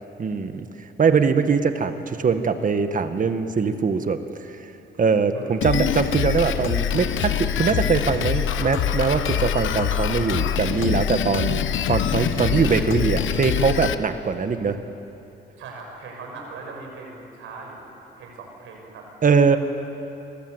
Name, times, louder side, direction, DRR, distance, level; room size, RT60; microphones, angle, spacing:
voice 1, 0.2-0.7 1.0-4.2 4.5-4.6 5.0-11.6 11.9-14.8 19.2-19.6, right 5 dB, 40° right, 8 dB, 1.8 m, -22 dB
Drum kit, 5.6-13.9, left 10 dB, 75° left, 1.1 m, -24 dB
voice 2, 15.6-17.8 18.1-19.1 19.5-19.6, right 4 dB, 85° right, 1 dB, 6.2 m, -39 dB
30.0 x 22.5 x 8.2 m, 3.0 s
cardioid pair, 90°, 20 cm